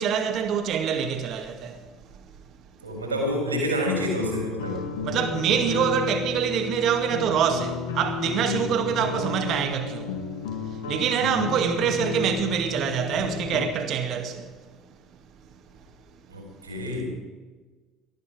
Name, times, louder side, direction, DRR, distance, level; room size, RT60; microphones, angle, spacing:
voice 1, 0.0-1.9 2.2-2.3 5.0-10.1 10.5-14.5, right 8 dB, 50° right, 2.1 m, -25 dB
voice 2, 2.8-4.8 16.3-17.0, equal, 85° right, 4.3 m, -28 dB
sound 1, 3.2-13.7, left 6 dB, 70° left, 1.8 m, -32 dB
19.0 x 13.5 x 5.1 m
figure-of-eight pair, 65°, 0 cm